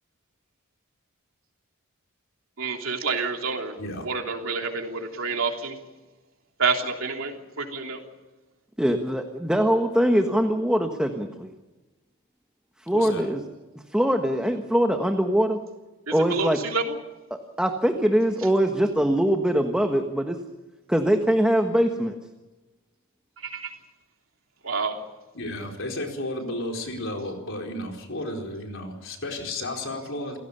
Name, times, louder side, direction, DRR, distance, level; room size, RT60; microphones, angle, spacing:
voice 1, 2.6-5.8 6.6-8.0 16.1-17.0 23.4-23.7 24.6-25.0, right 4 dB, 65° right, 2 dB, 3.4 m, -28 dB
voice 2, 8.8-11.5 12.9-13.4 13.9-15.6 16.1-16.6 17.6-20.4 20.9-22.1, equal, 5° right, 4 dB, 1.4 m, -22 dB
voice 3, 12.9-13.3 25.3-30.4, left 1 dB, 65° left, 2 dB, 4.5 m, -33 dB
28.5 x 16.5 x 6.9 m, 1.1 s
head